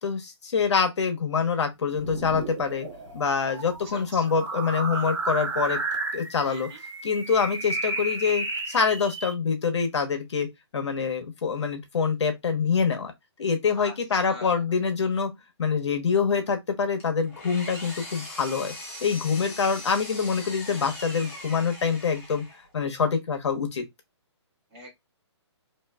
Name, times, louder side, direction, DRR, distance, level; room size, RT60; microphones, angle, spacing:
voice 1, 0.0-2.9 3.1-5.8 6.1-6.7 7.0-10.5 10.7-13.1 13.4-15.3 15.6-18.7 19.0-22.4 22.7-23.8, left 5 dB, 70° left, 1.0 m, -25 dB
sound 1, 1.9-9.3, right 2 dB, 80° right, 1.6 m, -33 dB
voice 2, 6.5-6.8 13.8-13.9 14.2-14.6 24.7-25.1, left 1 dB, 20° right, 1.6 m, -42 dB
Engine, 17.0-22.7, left 2 dB, 25° left, 0.9 m, -40 dB
3.0 x 2.8 x 2.3 m
hypercardioid pair, 165°, 15 cm